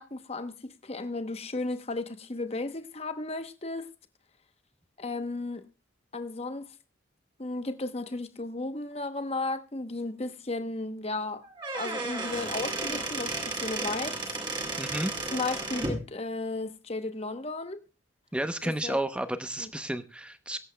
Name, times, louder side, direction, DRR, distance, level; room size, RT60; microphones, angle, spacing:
voice 1, 0.0-3.9 5.0-5.7 6.1-6.7 7.4-11.4 11.7-14.2 15.3-17.8 18.6-19.0 19.6-19.7, left 2 dB, 30° left, 0.9 m, -34 dB
Squeak / Wood, 11.4-16.0, right 2 dB, 25° right, 2.2 m, -33 dB
voice 2, 14.8-15.1 18.3-20.6, right 1 dB, 5° right, 0.7 m, -32 dB
23.5 x 8.0 x 2.2 m
head